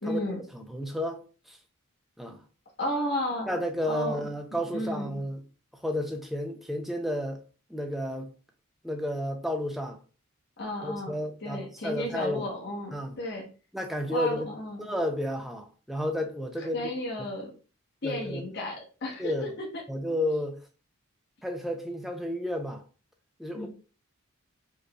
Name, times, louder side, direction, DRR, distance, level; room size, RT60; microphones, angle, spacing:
voice 1, 0.0-0.4 2.8-3.5 3.9-5.2 10.6-11.1 11.4-13.5 14.1-14.8 16.6-17.5 18.0-19.7 23.5-23.7, left 1 dB, 50° left, 0.9 m, -33 dB
voice 2, 0.5-1.6 2.2-2.4 3.5-5.4 5.8-7.4 7.7-8.3 8.8-10.0 10.8-12.5 12.9-13.2 13.7-14.5 14.8-16.9 18.0-18.4 19.2-19.5 19.9-20.6 21.4-22.8 23.4-23.7, equal, ahead, 0.4 m, -32 dB
4.7 x 3.1 x 2.2 m
head